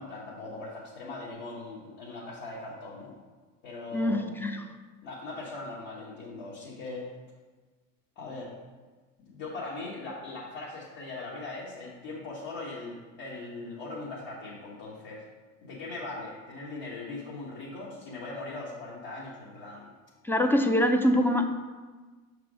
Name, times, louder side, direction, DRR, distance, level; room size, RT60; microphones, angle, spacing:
voice 1, 0.0-3.2 3.6-4.3 5.0-7.1 8.2-8.5 9.3-15.2 15.6-19.9, left 2 dB, 65° left, -6 dB, 1.3 m, -40 dB
voice 2, 3.9-4.6 20.2-21.5, left 1 dB, 5° left, 6 dB, 0.4 m, -24 dB
5.9 x 3.5 x 4.9 m, 1.3 s
hypercardioid pair, 75°, 42 cm